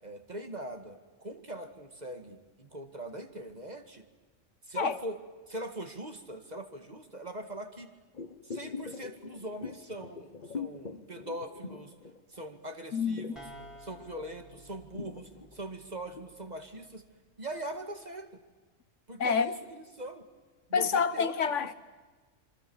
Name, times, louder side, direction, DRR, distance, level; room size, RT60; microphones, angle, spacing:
voice 1, 0.0-4.1 4.6-7.9 8.4-12.0 12.3-13.5 13.8-17.0 17.4-18.4 19.1-20.3 20.7-21.7, right 1 dB, 35° right, 2.1 m, -42 dB
sound 1, 8.1-12.6 12.8-16.4 16.7-16.8, left 5 dB, 40° left, 1.3 m, -43 dB
voice 2, 12.9-13.3 19.2-19.5 20.7-21.7, left 6 dB, 70° left, 1.4 m, -28 dB
sound 2, 13.4-17.0, right 1 dB, ahead, 3.4 m, -53 dB
27.0 x 25.0 x 7.2 m
omnidirectional pair, 1.3 m